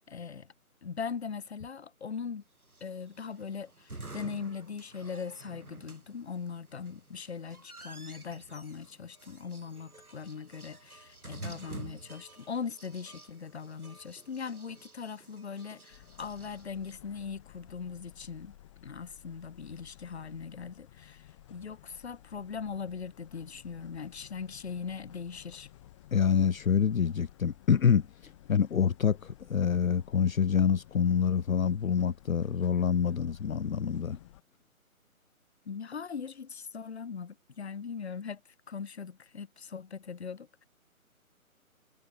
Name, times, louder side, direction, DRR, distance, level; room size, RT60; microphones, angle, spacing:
voice 1, 0.1-0.5 0.8-2.4 2.8-18.5 18.8-25.7 35.6-38.4 38.7-40.6, left 6 dB, 50° left, 1.0 m, -40 dB
sound 1, 2.6-16.9, right 2 dB, 80° right, 3.3 m, -50 dB
sound 2, 15.9-34.4, left 14 dB, 20° left, 3.5 m, -55 dB
voice 2, 26.1-34.2, left 7 dB, 70° left, 0.7 m, -26 dB
figure-of-eight pair, 150°, 43 cm